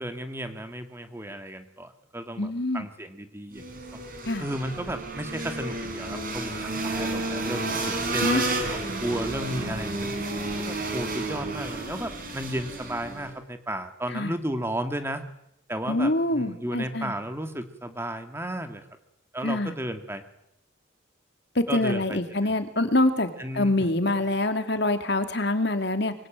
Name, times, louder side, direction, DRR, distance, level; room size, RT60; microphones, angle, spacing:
voice 1, 0.0-4.0 4.4-8.6 9.0-10.1 10.6-15.2 15.7-18.9 19.3-20.2 21.7-22.2 22.5-22.6 23.4-23.8, right 1 dB, 10° right, 7 dB, 2.0 m, -34 dB
voice 2, 2.4-2.9 4.3-4.4 8.2-8.4 14.1-14.3 15.9-17.1 19.4-19.7 21.5-26.1, left 2 dB, 55° left, 8 dB, 2.7 m, -25 dB
sound 1, 3.5-13.3, right 2 dB, 45° right, 5.3 m, -31 dB
25.0 x 23.5 x 9.2 m, 0.79 s
head